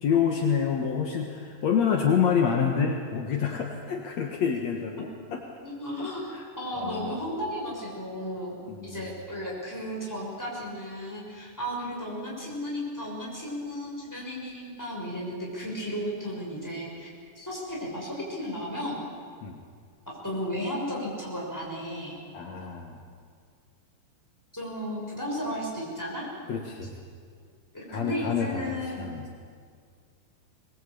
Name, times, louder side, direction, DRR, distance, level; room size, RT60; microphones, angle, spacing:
voice 1, 0.0-5.6 6.0-7.2 8.7-9.1 19.4-19.6 22.3-23.0 26.5-27.0 27.9-29.3, left 7 dB, 65° left, 1 dB, 2.7 m, -28 dB
voice 2, 5.6-8.6 8.8-19.0 20.2-22.2 24.5-26.3 27.7-29.0, equal, 5° left, -3 dB, 6.2 m, -34 dB
22.0 x 21.5 x 8.6 m, 2.1 s
omnidirectional pair, 3.6 m